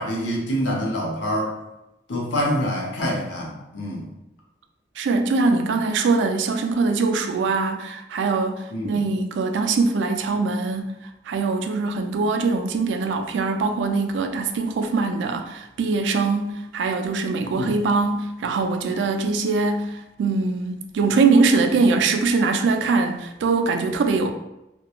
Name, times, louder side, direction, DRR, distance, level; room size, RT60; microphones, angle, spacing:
voice 1, 0.0-1.5 2.1-4.1 8.7-9.0 17.6-17.8, equal, 85° left, -3 dB, 0.7 m, -26 dB
voice 2, 5.0-10.9 11.3-24.3, right 4 dB, 80° right, 6 dB, 0.3 m, -22 dB
2.9 x 2.2 x 2.4 m, 0.92 s
head